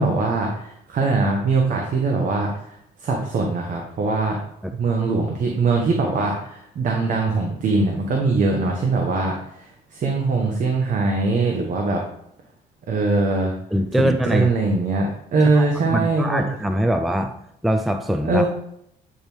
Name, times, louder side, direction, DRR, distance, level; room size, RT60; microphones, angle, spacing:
voice 1, 0.0-4.4 4.7-12.0 12.9-13.6 14.0-16.4 18.2-18.5, right 3 dB, 50° right, 1 dB, 1.2 m, -22 dB
voice 2, 13.7-14.5 15.6-17.3 17.6-18.4, equal, ahead, 7 dB, 0.4 m, -22 dB
8.8 x 3.5 x 4.5 m, 0.75 s
cardioid pair, 110°, 17 cm